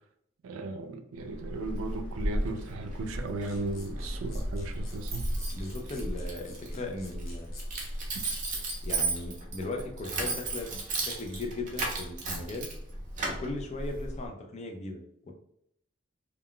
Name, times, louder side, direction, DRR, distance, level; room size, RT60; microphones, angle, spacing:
voice 1, 0.4-5.3, right 2 dB, 85° right, 7 dB, 0.4 m, -36 dB
Keys jangling, 1.2-14.3, right 2 dB, 40° right, 0.6 m, -35 dB
sound 1, 3.4-7.7, left 4 dB, 85° left, 0.7 m, -52 dB
voice 2, 5.5-7.5 8.8-12.7 13.3-15.3, left 2 dB, 35° left, 2 dB, 0.4 m, -38 dB
2.2 x 2.2 x 3.6 m, 0.74 s
head